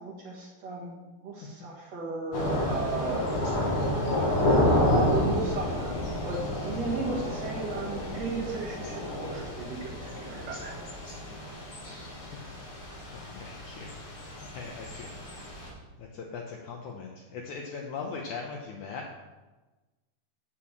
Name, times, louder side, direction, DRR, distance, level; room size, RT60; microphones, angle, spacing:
voice 1, 0.0-3.3 5.0-5.9 6.2-10.7, right 3 dB, 50° right, -3 dB, 2.3 m, -35 dB
Thunder / Rain, 2.3-15.7, left 1 dB, 40° left, 2.9 m, -30 dB
voice 2, 6.9-8.2 12.3-12.4 13.1-14.0 14.5-15.1 16.0-19.1, left 5 dB, 75° left, 1 dB, 1.9 m, -40 dB
8.7 x 6.9 x 7.3 m, 1.2 s
omnidirectional pair, 4.5 m